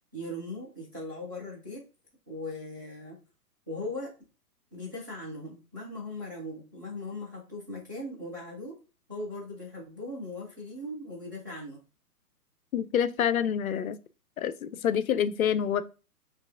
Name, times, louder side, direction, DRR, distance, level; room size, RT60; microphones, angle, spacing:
voice 1, 0.1-1.8 2.3-3.2 3.7-4.1 4.7-8.8 9.1-11.8, left 1 dB, 15° right, 0.4 m, -39 dB
voice 2, 12.7-14.0 14.4-15.8, left 8 dB, 65° left, 0.5 m, -27 dB
4.6 x 2.4 x 2.5 m
figure-of-eight pair, 120°, 47 cm